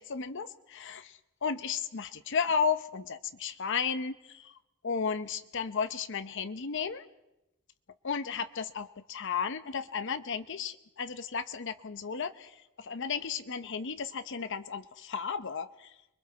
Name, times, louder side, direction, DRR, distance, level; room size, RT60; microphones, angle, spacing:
voice 1, 0.0-4.5 4.8-7.0 8.0-15.9, left 6 dB, 55° left, 11 dB, 0.7 m, -34 dB
29.5 x 21.5 x 4.1 m, 0.93 s
head